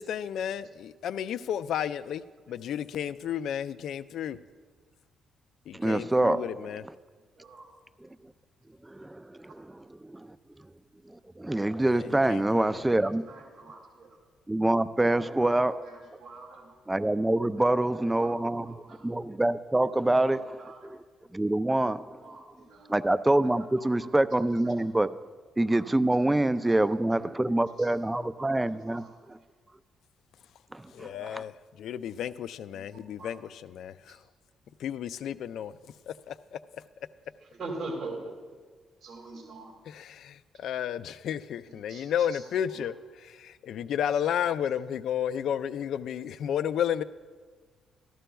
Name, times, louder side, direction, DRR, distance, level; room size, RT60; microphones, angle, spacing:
voice 1, 0.0-4.4 5.7-6.8 11.9-12.9 30.9-34.2 34.8-35.8 36.1-36.6 39.9-47.0, left 9 dB, 75° left, 15 dB, 0.3 m, -32 dB
voice 2, 5.7-6.6 8.9-10.3 11.4-13.2 14.5-15.8 16.9-18.7 19.0-20.6 21.3-22.2 22.9-25.1 25.6-29.0 30.7-31.4, right 1 dB, 10° right, 14 dB, 0.3 m, -26 dB
voice 3, 13.0-14.2 15.1-16.8 17.9-19.0 19.9-20.9 22.2-23.0 23.6-24.1 24.6-24.9 25.7-25.8 26.2-27.9 28.4-29.4 32.7-33.5 34.1-34.2 37.4-38.3 39.0-39.7 41.7-42.9, right 2 dB, 45° right, -1 dB, 2.1 m, -45 dB
14.0 x 12.5 x 2.3 m, 1.4 s
cardioid pair, 90°, 0 cm